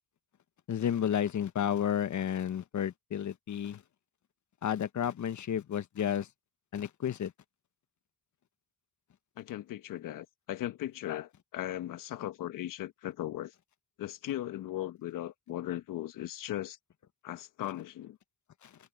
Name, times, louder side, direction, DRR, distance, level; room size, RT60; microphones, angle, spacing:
voice 1, 0.7-3.8 4.6-6.3 6.7-7.3 18.6-18.7, left 9 dB, 65° left, 1.3 m, -31 dB
voice 2, 9.4-13.5 14.0-16.8 17.2-18.2, left 13 dB, 80° left, 1.2 m, -38 dB
supercardioid pair, 45°, 32 cm